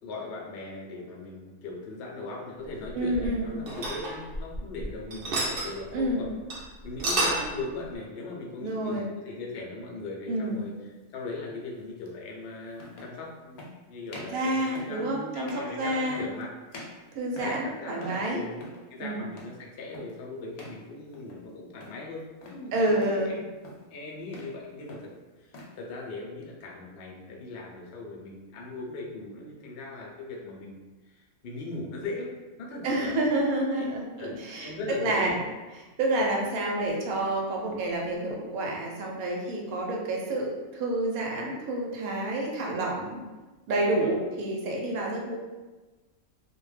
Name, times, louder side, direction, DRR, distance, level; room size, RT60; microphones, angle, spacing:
voice 1, 0.0-10.7 11.1-16.5 17.4-23.5 23.9-25.1 25.4-30.8 31.1-32.3 32.6-33.4 33.7-33.8 34.2-35.4 43.9-44.1, left 3 dB, 60° left, -2 dB, 0.6 m, -39 dB
sound 1, 2.8-4.8 5.1-5.7 6.1-6.2 6.5-6.6 6.9-7.5, right 2 dB, 60° right, 0.6 m, -29 dB
voice 2, 2.9-3.5 5.9-6.2 8.6-9.1 10.3-10.7 14.3-16.2 17.1-18.4 19.0-19.2 22.7-23.3 32.8-35.4 36.0-43.2 43.7-45.3, right 1 dB, 90° right, -1 dB, 1.1 m, -29 dB
sound 2, 10.5-10.7 12.1-12.2 12.7-13.2 13.6-13.8 14.1-14.4 14.8-15.0 15.4-15.7 16.1-16.4 16.7-17.7 18.0-18.3 18.5-18.9 19.4-19.6 19.9-20.2 20.6-20.8 21.1-21.5 21.8-22.6 23.0-23.3 23.6-23.9 24.2-24.6 24.9-25.8, left 2 dB, 90° left, 1.1 m, -45 dB
2.4 x 2.1 x 3.2 m, 1.2 s
omnidirectional pair, 1.5 m